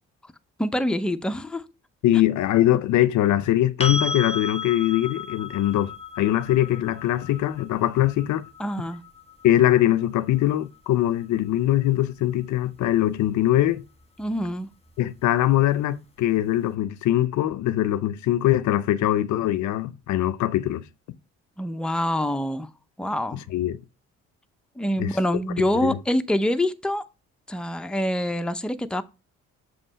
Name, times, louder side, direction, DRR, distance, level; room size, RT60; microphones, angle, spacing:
voice 1, 0.6-1.6 8.6-9.0 14.2-14.7 21.6-22.7 23.0-23.4 24.8-27.0 27.5-29.0, left 1 dB, 5° left, 0.6 m, -25 dB
voice 2, 2.0-8.4 9.4-13.8 15.0-20.8 23.5-23.8 25.0-25.2 25.8-25.9, left 13 dB, 70° left, 0.5 m, -22 dB
sound 1, 3.8-11.6 14.4-14.5, left 4 dB, 20° left, 1.3 m, -35 dB
7.3 x 3.0 x 5.4 m
cardioid pair, 90°, 30 cm